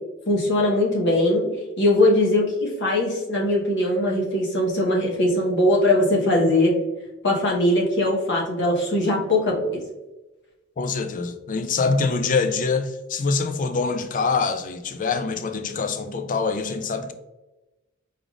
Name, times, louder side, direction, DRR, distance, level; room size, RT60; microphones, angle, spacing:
voice 1, 0.3-1.4 1.8-6.7 7.2-9.8, left 1 dB, 60° left, 1.1 m, -20 dB
voice 2, 10.8-17.1, left 4 dB, 40° left, 0.4 m, -24 dB
4.9 x 3.5 x 2.4 m
head